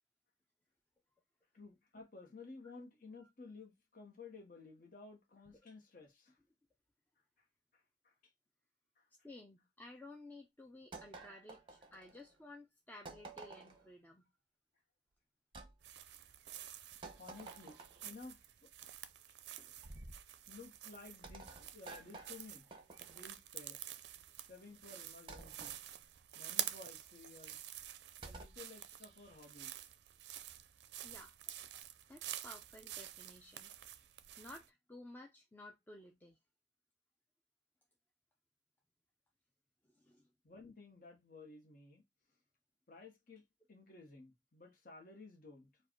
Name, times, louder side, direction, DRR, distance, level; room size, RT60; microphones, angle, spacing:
voice 1, 1.5-6.4 7.4-7.5 7.7-8.3 9.0-9.1 16.3-16.4 16.6-18.7 19.3-19.4 20.5-22.7 23.0-23.8 24.5-25.8 26.3-27.7 28.2-29.9 40.4-42.0 42.9-43.4 43.7-45.8, left 3 dB, 50° left, 1.1 m, -55 dB
voice 2, 9.2-14.3 19.6-19.7 31.0-31.5 32.1-33.7 34.4-36.4 40.0-40.3, left 2 dB, 10° left, 0.5 m, -55 dB
sound 1, 10.9-12.3 13.1-13.9 15.5-15.7 17.0-18.1 19.8-20.3 21.2-23.3 25.3-25.8 28.2-28.6, right 3 dB, 30° right, 0.8 m, -52 dB
sound 2, 15.8-34.7, right 12 dB, 65° right, 0.4 m, -48 dB
4.8 x 2.4 x 4.4 m
head